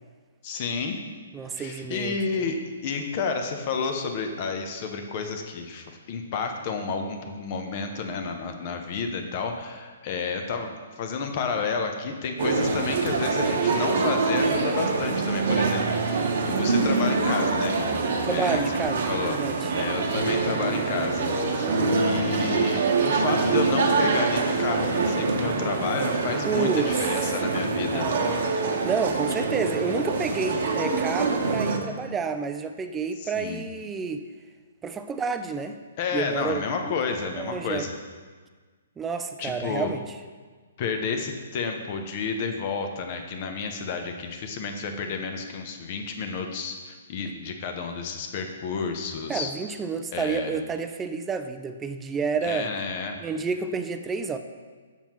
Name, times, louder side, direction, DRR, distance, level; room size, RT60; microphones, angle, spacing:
voice 1, 0.4-1.0 1.5-2.6 2.8-17.9 18.3-19.4 19.7-28.1 33.2-33.6 36.0-37.9 39.4-39.9 40.8-49.5 50.1-50.5 52.4-53.2, left 5 dB, 40° left, 5 dB, 0.7 m, -31 dB
voice 2, 1.3-2.5 18.2-19.7 21.6-22.0 26.5-26.9 27.9-28.5 28.8-34.3 34.8-35.8 36.1-37.9 39.0-40.0 49.3-52.7 53.2-54.4, right 5 dB, 15° right, 8 dB, 0.3 m, -30 dB
sound 1, 12.4-31.8, right 4 dB, 60° right, 0.9 m, -25 dB
7.0 x 5.7 x 3.0 m, 1.5 s
hypercardioid pair, 150°, 0 cm